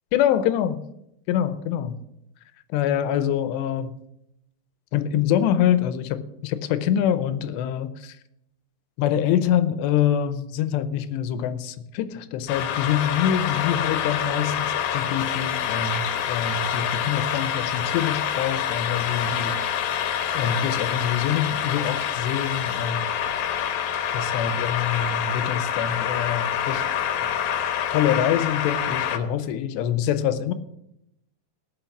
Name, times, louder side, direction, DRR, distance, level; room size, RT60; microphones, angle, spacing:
voice 1, 0.1-0.8 1.3-2.0 2.7-3.9 4.9-8.2 9.0-19.9 20.3-23.1 24.1-26.8 27.2-27.3 27.9-30.5, left 9 dB, 90° left, 12 dB, 3.0 m, -25 dB
sound 1, 12.5-29.2, left 9 dB, 70° left, 2.5 m, -26 dB
17.5 x 6.1 x 7.2 m, 0.83 s
omnidirectional pair, 4.8 m